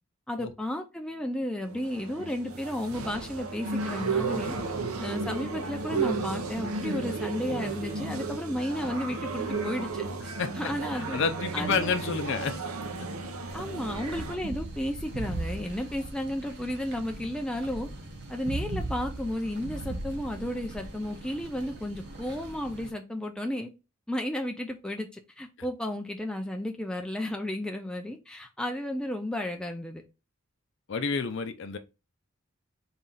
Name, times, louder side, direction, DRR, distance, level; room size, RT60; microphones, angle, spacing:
voice 1, 0.3-4.6 5.0-11.2 11.5-11.9 13.5-17.9 18.3-23.7 24.1-25.1 25.4-30.0, left 1 dB, 5° left, 0.4 m, -33 dB
sound 1, 1.6-14.4, right 4 dB, 85° right, 0.7 m, -33 dB
voice 2, 10.4-10.7 11.1-12.6 30.9-31.8, left 5 dB, 60° left, 0.5 m, -29 dB
sound 2, 13.5-22.9, right 2 dB, 55° right, 0.9 m, -39 dB
4.2 x 2.4 x 3.9 m
head